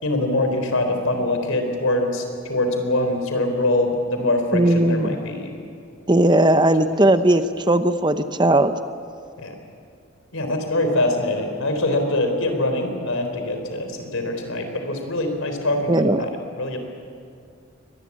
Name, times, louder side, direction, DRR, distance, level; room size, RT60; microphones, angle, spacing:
voice 1, 0.0-5.6 9.4-9.5 10.3-16.3 16.6-16.8, left 1 dB, 75° left, 5 dB, 4.0 m, -23 dB
voice 2, 4.5-5.2 6.1-8.7 15.9-16.2, right 1 dB, 20° right, 10 dB, 0.7 m, -18 dB
23.5 x 20.0 x 8.6 m, 2.4 s
head